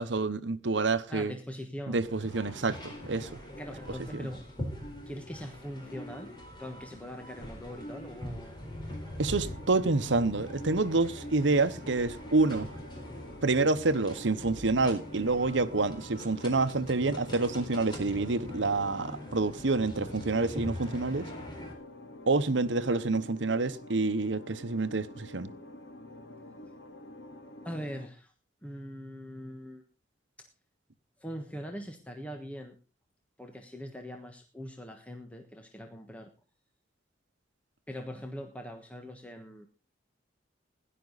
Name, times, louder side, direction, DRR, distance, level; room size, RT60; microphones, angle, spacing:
voice 1, 0.0-1.3 1.9-3.4 4.1-4.3 9.2-12.8 13.4-21.3 22.3-25.5, right 3 dB, 75° right, 1.0 m, -28 dB
voice 2, 1.1-2.0 3.6-4.5 5.1-6.3 6.6-8.6 22.9-23.1 27.6-28.3 28.6-29.8 30.4-30.5 31.2-32.8 33.4-36.3 37.9-39.7, equal, 5° left, 1.3 m, -42 dB
sound 1, 1.9-21.7, left 1 dB, 25° left, 4.2 m, -43 dB
sound 2, 9.3-28.1, left 1 dB, 65° left, 2.2 m, -48 dB
16.5 x 11.0 x 4.1 m
head